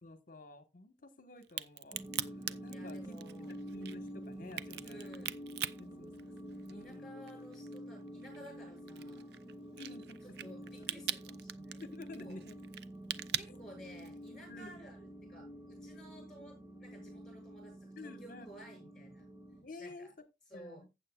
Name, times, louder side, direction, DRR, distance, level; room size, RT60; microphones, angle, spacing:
voice 1, 0.0-3.2 3.7-5.1 5.8-7.1 9.8-10.5 10.8-10.9 11.8-12.6 13.5-13.6 14.5-14.7 18.0-18.5 19.6-20.1 20.5-20.9, left 2 dB, 45° left, 1.3 m, -51 dB
Crack, 1.4-6.9 7.3-14.3, right 11 dB, 60° right, 0.5 m, -42 dB
sound 1, 1.9-19.6, equal, 20° right, 2.1 m, -48 dB
voice 2, 2.7-3.6 4.8-5.4 6.7-9.2 10.2-11.8 12.1-12.4 13.3-19.3 19.8-20.1 20.5-20.8, equal, 5° left, 6.5 m, -54 dB
15.0 x 7.8 x 2.4 m
head